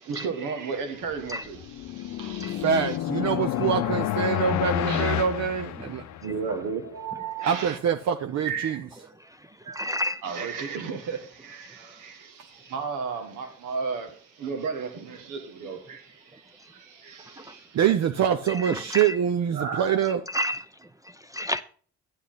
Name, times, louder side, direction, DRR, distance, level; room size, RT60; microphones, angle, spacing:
voice 1, 0.0-3.0 4.9-5.2 6.2-7.8 8.4-9.1 9.6-9.9 10.2-17.8 19.5-20.1, right 5 dB, 90° right, 1.6 m, -34 dB
sound 1, 1.4-6.5, left 12 dB, 65° left, 0.6 m, -29 dB
voice 2, 2.6-6.0 7.4-8.8 17.7-20.2, right 8 dB, 60° right, 0.7 m, -25 dB
voice 3, 9.7-10.2 18.5-19.2 20.3-20.7 21.3-21.6, equal, 10° right, 0.5 m, -30 dB
8.5 x 8.5 x 3.9 m
cardioid pair, 90°, 30 cm